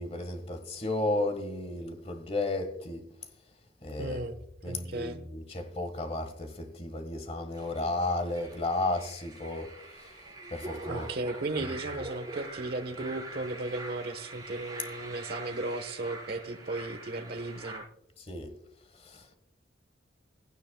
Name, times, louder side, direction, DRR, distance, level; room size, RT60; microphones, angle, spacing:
voice 1, 0.0-3.1 3.8-4.3 4.6-9.7 10.0-10.1 10.5-11.1 18.2-18.5 18.9-19.4, left 2 dB, 35° left, 1.5 m, -33 dB
voice 2, 4.0-4.4 4.6-5.2 10.9-17.8, right 2 dB, 55° right, 1.1 m, -35 dB
sound 1, 7.5-17.8, right 2 dB, 20° right, 4.3 m, -44 dB
16.0 x 15.0 x 2.3 m
head